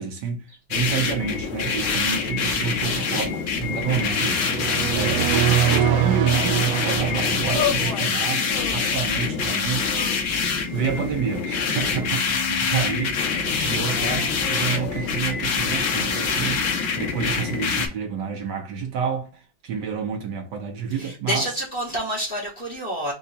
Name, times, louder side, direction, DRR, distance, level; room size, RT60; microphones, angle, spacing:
voice 1, 0.0-10.4 10.7-21.5, right 7 dB, 65° right, 1.4 m, -29 dB
sound 1, 0.7-17.9, left 5 dB, 85° left, 1.8 m, -25 dB
sound 2, 4.4-8.3, right 10 dB, 90° right, 0.7 m, -23 dB
sound 3, 7.5-8.1 8.5-9.2 9.8-10.7 11.5-12.5 13.8-15.2, left 8 dB, 55° left, 1.0 m, -33 dB
voice 2, 21.0-23.1, equal, 35° left, 1.1 m, -28 dB
4.7 x 2.4 x 4.0 m
omnidirectional pair, 2.1 m